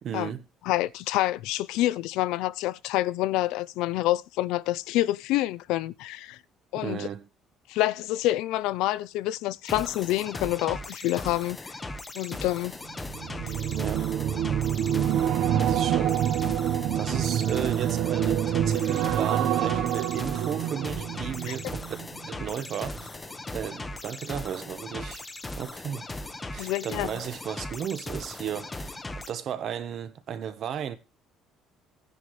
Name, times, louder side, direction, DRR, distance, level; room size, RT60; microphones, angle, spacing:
voice 1, 0.0-0.4 6.8-7.3 13.7-14.1 15.6-16.3 16.9-22.0 22.3-23.2 23.5-25.3 25.6-26.1 26.5-29.0 29.3-31.0, right 8 dB, 45° right, 1.2 m, -34 dB
voice 2, 0.7-6.4 6.7-7.1 7.7-11.7 12.1-12.8 13.5-13.6 21.5-21.6 26.6-27.1, left 16 dB, 85° left, 0.6 m, -27 dB
sound 1, 9.6-29.3, left 2 dB, 15° left, 0.9 m, -38 dB
sound 2, 13.0-22.4 22.7-23.0, right 10 dB, 65° right, 1.0 m, -27 dB
17.5 x 9.8 x 3.2 m
cardioid pair, 155°, 0 cm